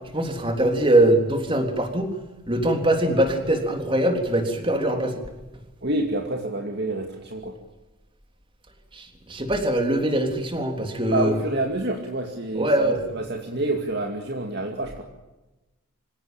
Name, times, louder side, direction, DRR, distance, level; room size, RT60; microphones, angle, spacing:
voice 1, 0.1-2.1 2.5-5.2 8.9-11.3 12.6-13.1, right 1 dB, 25° right, 5 dB, 3.5 m, -22 dB
voice 2, 5.8-7.6 11.1-15.0, right 2 dB, 50° right, 3 dB, 2.3 m, -28 dB
26.0 x 17.0 x 8.9 m, 1.1 s
head